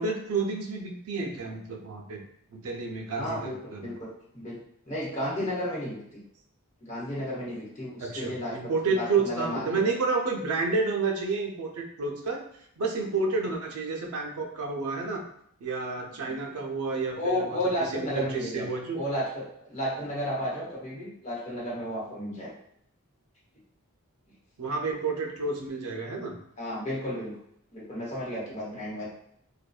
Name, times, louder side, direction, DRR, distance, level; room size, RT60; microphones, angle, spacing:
voice 1, 0.0-2.2 2.5-3.9 8.0-12.4 12.8-15.2 15.6-19.0 24.6-26.4, right 4 dB, 75° right, 2 dB, 0.5 m, -30 dB
voice 2, 3.2-4.6 4.8-6.2 6.8-8.6 8.9-9.6 16.3-16.4 17.2-18.7 18.9-22.5 26.6-27.3 27.7-29.1, equal, 30° left, -6 dB, 0.9 m, -33 dB
2.5 x 2.1 x 2.3 m, 0.71 s
head